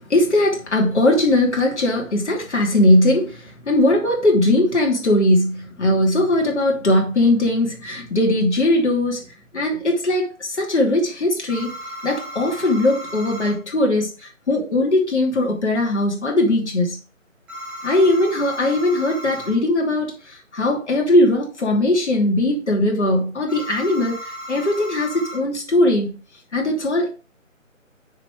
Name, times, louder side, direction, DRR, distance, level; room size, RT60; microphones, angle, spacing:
voice 1, 0.1-9.2 9.5-11.7 12.0-17.0 17.8-26.1 26.5-27.1, left 1 dB, 55° left, 2.7 m, -19 dB
sound 1, 11.5-13.6 17.5-19.6 23.5-25.4, equal, 5° right, 1.1 m, -35 dB
6.7 x 5.1 x 4.9 m
figure-of-eight pair, 150°, 40 cm